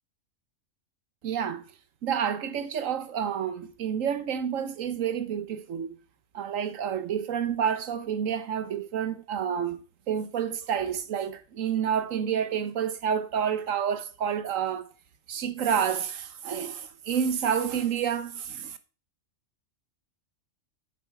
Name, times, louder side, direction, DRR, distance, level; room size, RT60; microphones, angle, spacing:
voice 1, 1.2-1.6 2.0-5.9 6.3-9.8 10.1-14.9 15.3-18.8, right 8 dB, 85° right, 1.4 m, -29 dB
9.1 x 7.5 x 4.7 m
omnidirectional pair, 1.3 m